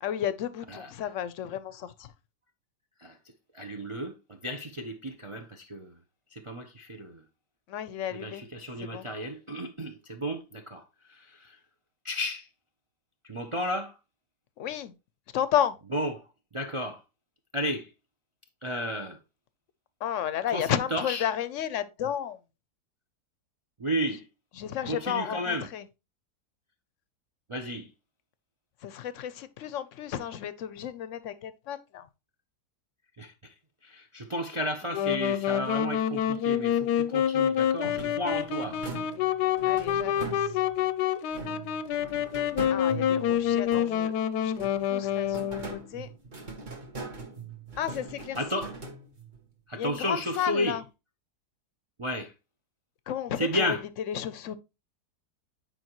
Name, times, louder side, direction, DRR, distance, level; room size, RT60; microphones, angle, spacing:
voice 1, 0.0-2.1 7.7-8.4 8.8-9.1 14.6-15.0 15.3-15.8 20.0-22.4 24.6-25.8 28.8-32.1 39.6-40.5 42.7-44.1 44.4-46.1 47.8-48.7 49.8-50.8 53.1-53.8 54.1-54.6, left 10 dB, 65° left, 0.8 m, -32 dB
voice 2, 3.5-5.9 6.3-7.2 8.1-10.8 11.1-11.6 12.0-12.5 13.2-13.9 15.9-16.2 16.5-17.0 17.5-17.9 18.6-19.2 20.5-21.3 23.8-24.3 24.9-25.7 27.5-27.9 33.2-33.5 33.8-38.8 48.4-48.7 49.7-50.8 52.0-52.3 53.4-53.8, equal, 50° right, 0.3 m, -33 dB
Wind instrument woodwind instrument, 34.9-45.8, left 10 dB, 90° left, 1.2 m, -27 dB
sound 1, 37.8-40.9 41.3-44.1 44.5-49.4, right 4 dB, 30° right, 1.2 m, -41 dB
9.2 x 4.9 x 3.0 m
omnidirectional pair, 1.7 m